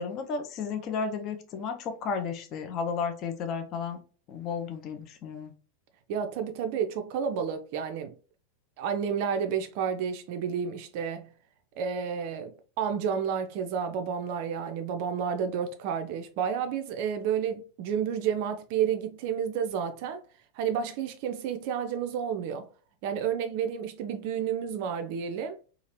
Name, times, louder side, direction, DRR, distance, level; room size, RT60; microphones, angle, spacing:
voice 1, 0.0-4.0 4.3-5.5, left 5 dB, 35° left, 0.5 m, -33 dB
voice 2, 6.1-8.1 8.8-11.3 11.8-20.2 20.6-22.7 23.0-25.6, right 7 dB, 45° right, 0.3 m, -30 dB
2.8 x 2.4 x 3.0 m
figure-of-eight pair, 90°, 0 cm